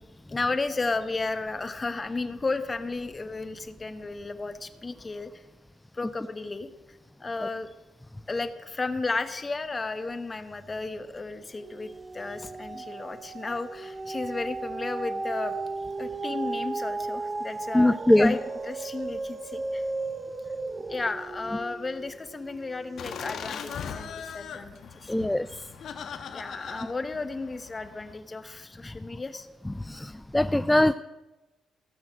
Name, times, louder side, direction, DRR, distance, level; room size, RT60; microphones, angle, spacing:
voice 1, 0.0-5.4 5.9-7.7 8.3-15.6 16.0-19.8 20.9-25.2 26.3-29.5, left 3 dB, 25° left, 10 dB, 1.1 m, -33 dB
sound 1, 10.5-11.0 11.4-23.9 24.4-24.5, right 3 dB, 30° right, 0.6 m, -36 dB
voice 2, 17.7-18.3 25.1-25.6 29.8-30.9, left 1 dB, 10° left, 13 dB, 0.3 m, -22 dB
Laughter, 23.0-28.1, left 7 dB, 65° left, 1.2 m, -40 dB
15.5 x 6.3 x 7.4 m, 1.1 s
cardioid pair, 90°, 0 cm